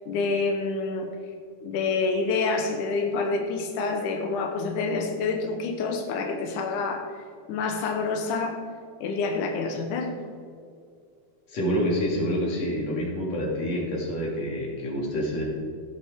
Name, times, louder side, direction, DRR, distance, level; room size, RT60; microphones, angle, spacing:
voice 1, 0.1-1.1 1.6-7.2 7.5-8.6 9.0-10.2, left 4 dB, 85° left, 3 dB, 1.8 m, -27 dB
voice 2, 11.5-15.4, equal, 45° left, -3 dB, 3.2 m, -27 dB
16.0 x 8.3 x 3.6 m, 2.2 s
omnidirectional pair, 5.0 m